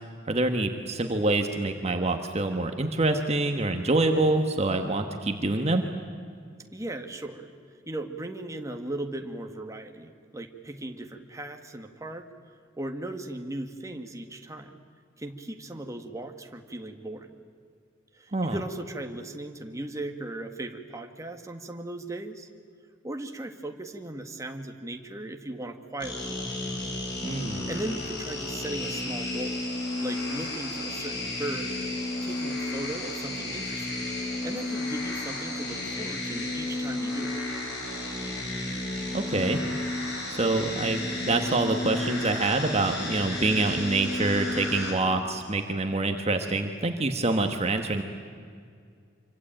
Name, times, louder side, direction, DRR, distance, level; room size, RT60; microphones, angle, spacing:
voice 1, 0.3-5.8 18.3-18.6 27.2-27.7 39.1-39.6 40.3-48.0, right 2 dB, 35° right, 5 dB, 1.4 m, -26 dB
voice 2, 6.7-7.5 7.9-12.3 12.8-14.8 15.2-17.3 18.1-22.5 23.0-26.4 27.5-29.6 30.0-31.9 32.2-34.1 34.4-37.4, right 1 dB, 15° right, 4 dB, 1.7 m, -37 dB
sound 1, 26.0-44.9, left 2 dB, 60° left, 6.0 m, -32 dB
26.0 x 25.0 x 9.0 m, 2.2 s
head